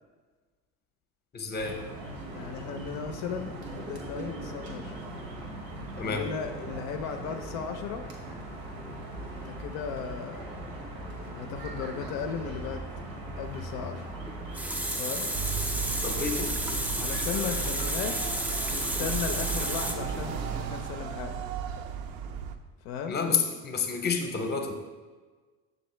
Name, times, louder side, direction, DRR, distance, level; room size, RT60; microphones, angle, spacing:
voice 1, 1.3-1.8 6.0-6.2 16.0-16.5 23.1-24.7, left 5 dB, 25° left, 5 dB, 0.7 m, -29 dB
sound 1, 1.5-20.6, right 1 dB, 85° right, 1.0 m, -39 dB
voice 2, 2.3-4.9 6.0-8.1 9.3-11.0 11.4-12.8 13.4-14.1 15.0-15.3 17.0-21.5 22.8-23.2, left 7 dB, 70° left, 5 dB, 0.5 m, -36 dB
Water tap faucet, 14.3-19.9, right 1 dB, 5° right, 0.3 m, -32 dB
sound 2, 15.3-22.6, right 6 dB, 65° right, 0.5 m, -35 dB
6.4 x 2.5 x 3.1 m, 1.4 s
hypercardioid pair, 70°, 39 cm